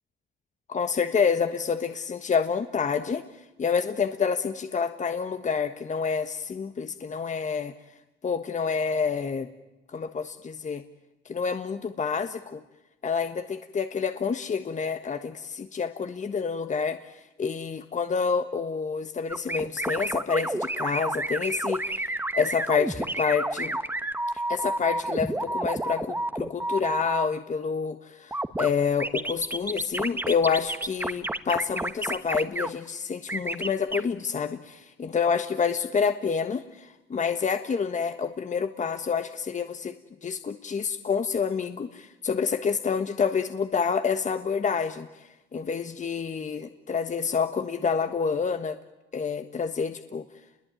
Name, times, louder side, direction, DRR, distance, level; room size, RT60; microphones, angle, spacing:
voice 1, 0.7-3.2 3.6-7.7 8.2-9.5 9.9-10.8 11.3-12.6 13.0-17.1 17.4-23.8 24.5-39.9 40.2-45.1 45.5-48.8 49.1-50.2, left 6 dB, 40° left, 8 dB, 1.4 m, -28 dB
sound 1, 19.3-27.2 28.3-28.7 29.0-32.7 33.3-34.0, right 1 dB, 10° right, 1.4 m, -30 dB
29.5 x 22.0 x 9.2 m, 1.0 s
cardioid pair, 90°, 20 cm